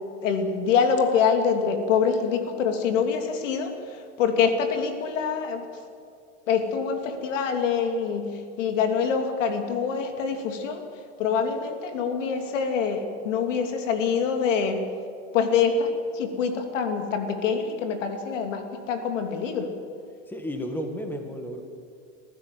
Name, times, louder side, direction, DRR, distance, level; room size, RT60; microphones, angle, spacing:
voice 1, 0.2-3.7 4.2-5.7 6.5-10.8 11.2-14.8 15.3-19.7, left 6 dB, 85° left, 5 dB, 2.9 m, -25 dB
voice 2, 20.3-21.6, equal, 5° left, 4 dB, 1.8 m, -32 dB
24.0 x 15.0 x 7.7 m, 2.4 s
supercardioid pair, 150°, 36 cm